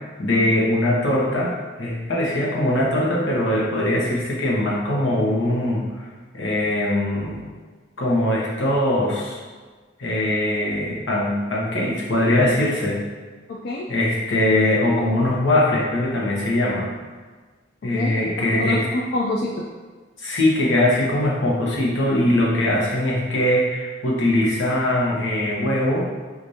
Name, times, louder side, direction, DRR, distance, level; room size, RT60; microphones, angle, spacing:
voice 1, 0.0-1.5 1.8-5.8 6.3-7.4 8.0-9.4 10.0-13.0 13.9-16.9 17.8-18.9 20.2-26.1, left 1 dB, 85° left, -4 dB, 0.9 m, -21 dB
voice 2, 13.5-13.9 17.8-19.6, left 2 dB, 55° left, -2 dB, 0.3 m, -27 dB
4.8 x 2.5 x 2.7 m, 1.4 s
head